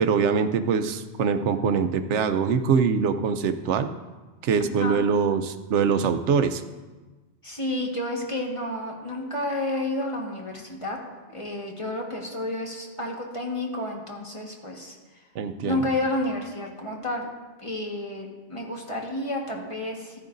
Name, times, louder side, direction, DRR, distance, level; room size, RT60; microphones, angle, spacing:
voice 1, 0.0-3.9 4.4-6.6 15.3-15.8, right 6 dB, 85° right, 9 dB, 1.0 m, -23 dB
voice 2, 4.6-5.0 7.4-11.0 11.3-15.0 15.6-17.3 17.6-20.2, left 1 dB, 25° left, -1 dB, 1.5 m, -30 dB
14.5 x 11.5 x 2.6 m, 1.3 s
omnidirectional pair, 1.2 m